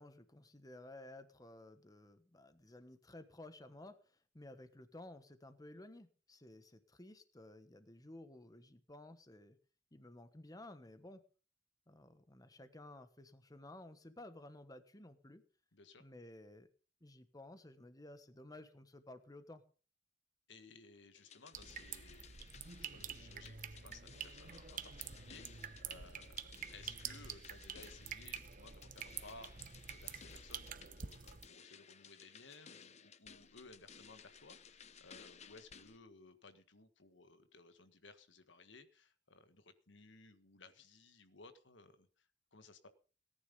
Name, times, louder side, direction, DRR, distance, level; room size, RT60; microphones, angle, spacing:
voice 1, 0.0-9.6 9.9-11.2 11.9-15.4 16.0-16.7 17.0-19.6, left 1 dB, 20° left, 10 dB, 1.2 m, -55 dB
voice 2, 15.7-16.0 20.5-22.6 22.9-42.9, left 3 dB, 85° left, 10 dB, 1.6 m, -59 dB
sound 1, 21.2-36.0, left 7 dB, 40° left, 0.8 m, -59 dB
sound 2, 21.5-31.5, right 7 dB, 45° right, 0.9 m, -48 dB
18.5 x 10.0 x 5.4 m, 0.39 s
head